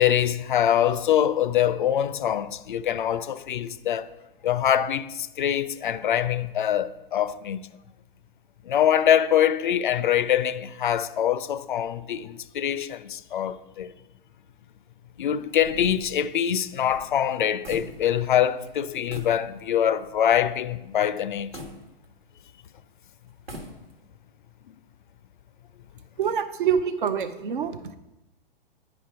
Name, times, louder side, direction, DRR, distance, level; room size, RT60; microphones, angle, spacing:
voice 1, 0.0-4.1 4.4-7.7 8.7-13.9 15.2-21.5, left 10 dB, 55° left, 0.4 m, -24 dB
sound 1, 15.5-18.4 18.6-18.8 19.1-19.4 19.9-20.0 21.5-22.5 23.3-24.2, right 1 dB, 80° right, 1.4 m, -42 dB
voice 2, 26.2-27.8, right 7 dB, 60° right, 0.6 m, -25 dB
9.7 x 5.0 x 4.7 m
figure-of-eight pair, 110°, 29 cm